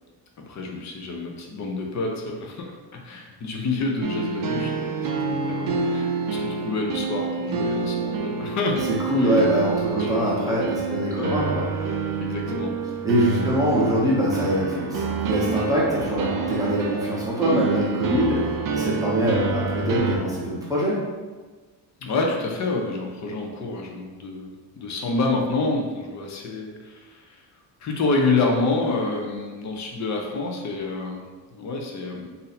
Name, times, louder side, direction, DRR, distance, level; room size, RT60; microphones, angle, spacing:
voice 1, 0.5-8.9 9.2-9.4 10.0-10.6 11.1-11.4 12.2-13.5 22.0-27.4 27.8-32.3, left 3 dB, 40° left, 1 dB, 0.6 m, -28 dB
sound 1, 4.0-20.2, right 4 dB, 50° right, 0.5 m, -27 dB
voice 2, 8.9-12.0 13.0-21.0, right 1 dB, 10° right, -7 dB, 0.7 m, -23 dB
2.7 x 2.6 x 4.0 m, 1.4 s
cardioid pair, 135°, 44 cm